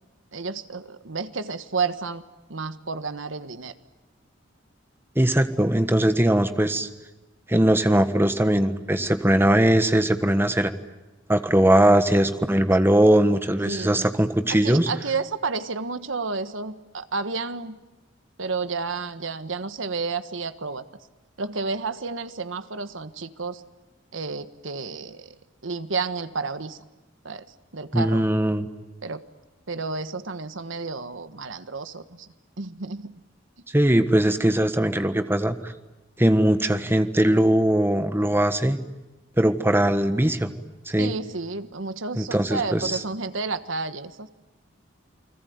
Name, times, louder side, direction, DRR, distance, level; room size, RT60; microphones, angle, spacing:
voice 1, 0.3-2.2 2.5-3.7 13.6-14.1 14.6-17.8 18.4-20.8 21.4-23.6 24.1-25.3 25.6-26.8 27.2-27.4 27.7-28.2 29.0-29.2 29.7-32.3 32.6-33.2 41.0-44.3, right 4 dB, 85° right, 11 dB, 1.4 m, -31 dB
voice 2, 5.1-6.9 7.5-10.7 11.3-14.9 27.9-28.7 33.7-35.7 36.2-38.8 39.4-40.5 40.9-41.1 42.2-43.0, right 1 dB, 10° right, 9 dB, 1.4 m, -20 dB
29.5 x 21.0 x 9.5 m, 1.1 s
head